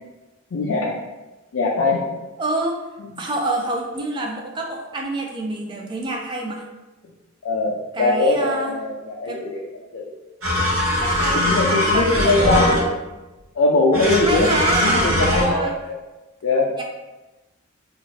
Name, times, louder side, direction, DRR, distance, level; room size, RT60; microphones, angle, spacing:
voice 1, 0.5-1.0 1.5-2.1 3.1-3.2 7.4-9.6 9.9-10.1 11.5-12.9 13.6-15.7 16.4-16.7, left 2 dB, 65° left, -4 dB, 0.4 m, -21 dB
voice 2, 2.4-2.9 3.2-6.6 7.9-8.8 9.3-9.4 11.0-12.9 14.2-15.7 16.7-16.8, right 2 dB, 20° right, 0 dB, 0.4 m, -26 dB
sound 1, 10.4-13.1 13.9-15.4, left 1 dB, 75° right, 0.8 m, -21 dB
2.7 x 2.5 x 3.0 m, 1.1 s
head